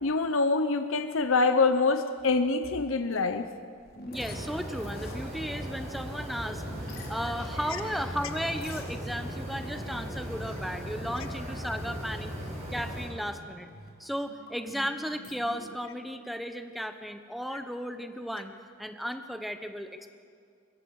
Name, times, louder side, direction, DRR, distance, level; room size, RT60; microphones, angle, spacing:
voice 1, 0.0-3.5, left 3 dB, 70° left, 8 dB, 0.8 m, -25 dB
sound 1, 3.1-15.7, left 1 dB, 45° left, 3.5 m, -49 dB
voice 2, 4.1-6.6 7.1-12.3 12.7-13.7 14.0-20.1, equal, ahead, 7 dB, 0.9 m, -35 dB
sound 2, 4.1-13.1, equal, 30° right, 4.9 m, -37 dB
25.0 x 22.0 x 4.9 m, 2.3 s
head